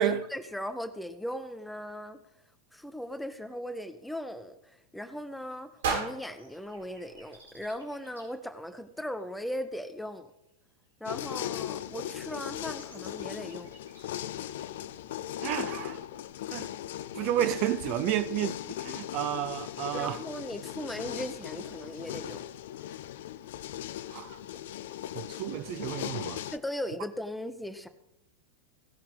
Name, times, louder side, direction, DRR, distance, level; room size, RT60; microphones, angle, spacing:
voice 1, 0.0-2.2 2.7-10.3 11.0-13.7 19.9-22.4 26.5-27.9, equal, ahead, 0.8 m, -38 dB
sound 1, 5.8-8.0, right 5 dB, 60° right, 2.4 m, -36 dB
sound 2, 5.8-5.9 6.4-8.3 8.6-8.7 9.2-9.3 9.5-9.6 9.9-10.1 11.0-14.0, right 1 dB, 85° right, 4.4 m, -56 dB
sound 3, 11.0-26.6, left 12 dB, 55° left, 0.4 m, -38 dB
voice 2, 15.4-16.1 16.5-16.7 17.1-20.2 24.1-24.4 25.1-26.4, right 12 dB, 40° right, 0.5 m, -31 dB
17.0 x 5.7 x 5.2 m
figure-of-eight pair, 90°, 0 cm